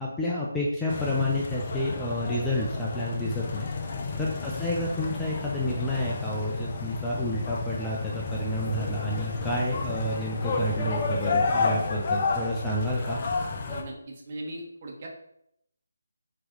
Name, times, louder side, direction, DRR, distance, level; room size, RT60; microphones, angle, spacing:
voice 1, 0.0-3.7 4.2-13.2, left 1 dB, 5° left, -5 dB, 0.7 m, -30 dB
sound 1, 0.9-13.8, left 4 dB, 35° left, 0.9 m, -31 dB
voice 2, 13.7-15.1, right 1 dB, 35° right, -1 dB, 1.5 m, -39 dB
7.7 x 3.2 x 3.9 m, 0.75 s
figure-of-eight pair, 155°, 0 cm